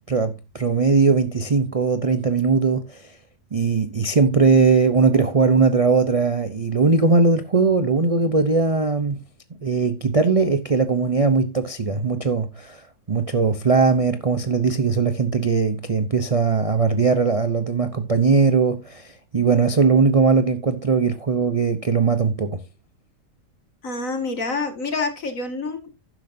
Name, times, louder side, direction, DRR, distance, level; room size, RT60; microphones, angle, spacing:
voice 1, 0.1-3.1 3.5-9.2 9.6-22.6, right 4 dB, 55° right, 0.4 m, -20 dB
voice 2, 23.8-25.9, left 3 dB, 50° left, 2.3 m, -27 dB
12.0 x 10.5 x 2.7 m
omnidirectional pair, 1.8 m